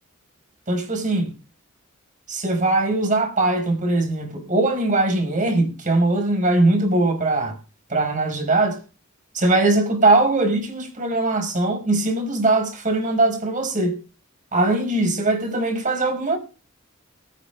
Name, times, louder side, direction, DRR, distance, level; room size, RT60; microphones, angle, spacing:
voice 1, 0.7-1.3 2.3-7.6 7.9-8.8 9.3-14.0 14.5-16.4, right 2 dB, 40° right, 5.2 m, -21 dB
22.5 x 8.0 x 3.6 m
head